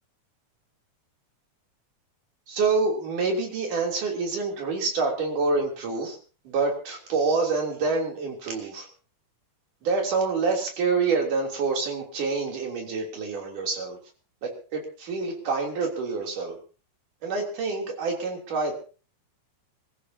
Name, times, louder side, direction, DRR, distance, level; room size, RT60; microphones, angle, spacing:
voice 1, 2.5-6.2 6.4-8.9 9.8-14.0 14.4-16.6 17.2-18.7, right 4 dB, 85° right, 0 dB, 4.8 m, -27 dB
28.0 x 14.5 x 2.8 m, 0.37 s
omnidirectional pair, 3.5 m